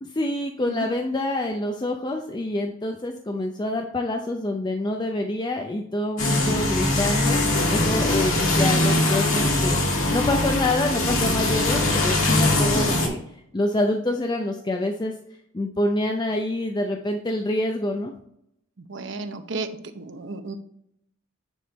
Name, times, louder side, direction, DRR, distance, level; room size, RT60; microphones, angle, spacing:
voice 1, 0.0-7.4 7.7-9.8 10.1-13.2 13.5-15.1 15.5-18.1, left 1 dB, 20° left, 3 dB, 0.5 m, -26 dB
mowing the lawn grass mower lawn mower, 6.2-13.1, left 2 dB, 85° left, 2.2 m, -22 dB
voice 2, 18.8-19.7 19.9-20.6, right 3 dB, 60° right, 8 dB, 0.7 m, -33 dB
9.3 x 3.7 x 4.0 m, 0.74 s
head